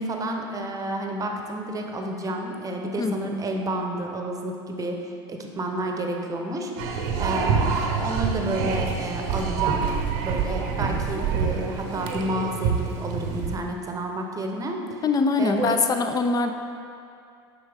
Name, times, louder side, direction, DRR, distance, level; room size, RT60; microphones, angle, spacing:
voice 1, 0.0-5.0 5.3-6.7 7.2-9.9 10.2-14.8 15.4-15.8, right 1 dB, 25° right, 2 dB, 0.8 m, -30 dB
sound 1, 6.8-13.6, right 6 dB, 65° right, 0.8 m, -26 dB
voice 2, 15.0-16.5, left 4 dB, 25° left, 6 dB, 0.5 m, -22 dB
7.7 x 5.6 x 3.4 m, 2.5 s
hypercardioid pair, 95°, 14 cm